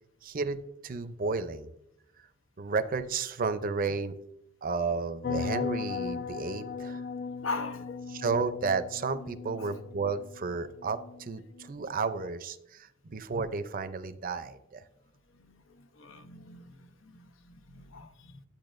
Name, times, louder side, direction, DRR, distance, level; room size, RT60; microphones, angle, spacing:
voice 1, 0.2-1.7 2.6-4.2 4.6-7.0 8.1-14.9, right 4 dB, 45° right, 9 dB, 0.5 m, -32 dB
sound 1, 5.2-11.7, left 5 dB, 50° left, 0.5 m, -37 dB
voice 2, 7.4-8.1 8.4-8.6 9.6-9.7 15.3-18.4, left 3 dB, 80° left, 8 dB, 0.8 m, -41 dB
10.5 x 8.5 x 2.5 m, 0.80 s
head